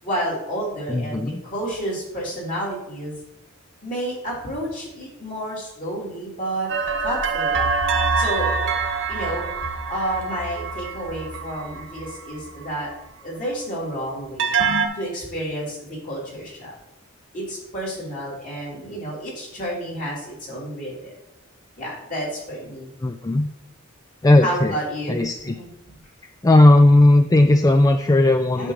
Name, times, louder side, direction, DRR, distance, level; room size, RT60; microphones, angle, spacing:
voice 1, 0.0-3.2 3.8-6.7 7.0-7.7 8.1-8.5 9.1-9.5 9.9-12.9 13.2-14.6 14.9-16.7 17.3-21.1 21.8-22.9 24.4-26.0 28.5-28.7, right 1 dB, 40° left, -5 dB, 3.3 m, -30 dB
voice 2, 0.9-1.4 23.0-23.5 24.2-24.8 25.1-25.5 26.4-28.7, left 1 dB, 15° left, 7 dB, 0.3 m, -16 dB
sound 1, 6.7-12.9 14.4-14.9, right 5 dB, 65° right, 1.2 m, -25 dB
8.9 x 3.8 x 6.8 m, 0.90 s
head